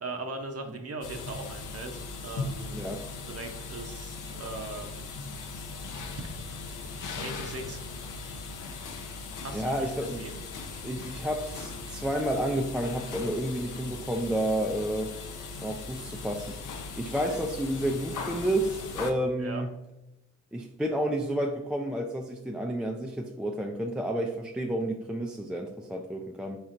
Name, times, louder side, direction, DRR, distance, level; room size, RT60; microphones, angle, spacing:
voice 1, 0.0-2.9 3.2-5.1 5.8-6.1 6.7-6.8 7.2-7.8 9.4-9.7 10.0-10.4 19.4-19.6, right 3 dB, 50° right, 5 dB, 0.7 m, -39 dB
sound 1, 1.0-19.1, left 4 dB, 80° left, 0.6 m, -39 dB
voice 2, 2.7-3.0 9.5-10.2 10.8-15.1 15.6-16.5 17.0-19.7 20.5-26.6, right 1 dB, 5° right, 2 dB, 0.4 m, -30 dB
4.4 x 4.0 x 2.5 m, 0.93 s
cardioid pair, 60°, 30 cm